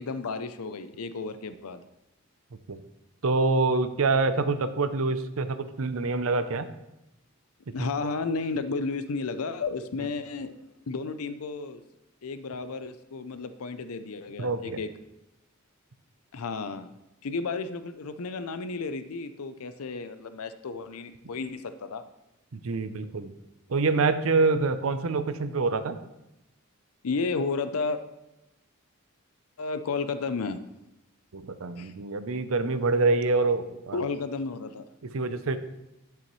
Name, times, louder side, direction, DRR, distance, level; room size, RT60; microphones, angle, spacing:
voice 1, 0.0-1.8 7.7-10.5 10.9-11.8 12.2-14.9 16.3-16.9 17.2-22.0 27.0-28.0 29.6-30.6 31.8-31.9 33.9-34.8, left 4 dB, 90° left, 11 dB, 0.6 m, -32 dB
voice 2, 3.2-6.7 14.4-14.8 22.5-23.3 23.7-26.0 31.3-34.0 35.0-35.6, right 3 dB, 70° right, 11 dB, 0.6 m, -26 dB
10.5 x 6.9 x 3.1 m, 0.91 s
head